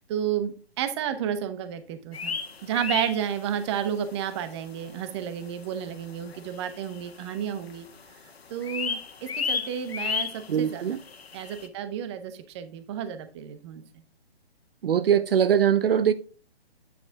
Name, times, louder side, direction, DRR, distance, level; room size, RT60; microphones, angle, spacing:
voice 1, 0.1-7.9 8.5-10.9 11.3-14.0, right 9 dB, 25° right, 0.9 m, -31 dB
sound 1, 2.1-3.8 4.2-4.3 4.8-4.9 5.6-5.7 5.9-6.0 6.3-7.4 7.7-8.0 8.3-11.7, left 6 dB, 70° left, 1.3 m, -33 dB
voice 2, 10.5-11.0 14.8-16.1, right 8 dB, 60° right, 0.7 m, -22 dB
9.3 x 4.7 x 3.5 m
figure-of-eight pair, 140°, 32 cm